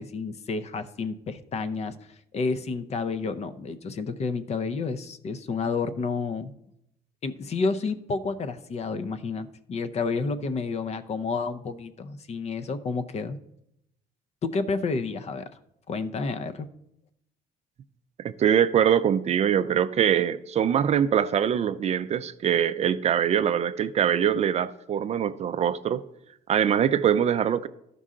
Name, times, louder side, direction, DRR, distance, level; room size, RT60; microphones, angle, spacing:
voice 1, 0.0-6.5 7.2-13.4 14.4-15.5 15.9-16.7, left 4 dB, 40° left, 0.6 m, -30 dB
voice 2, 18.2-26.0 26.5-27.7, right 9 dB, 40° right, 0.4 m, -23 dB
12.5 x 5.4 x 3.7 m
cardioid pair, 110°, 17 cm